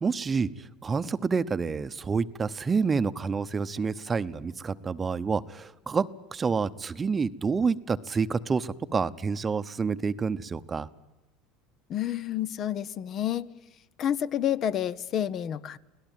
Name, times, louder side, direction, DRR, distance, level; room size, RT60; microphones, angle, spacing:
voice 1, 0.0-6.1 6.3-10.9, right 5 dB, 25° right, 14 dB, 0.9 m, -28 dB
voice 2, 11.9-13.5 14.0-15.8, left 10 dB, 45° left, 16 dB, 0.9 m, -29 dB
24.0 x 17.5 x 9.3 m, 1.0 s
supercardioid pair, 105°, 0 cm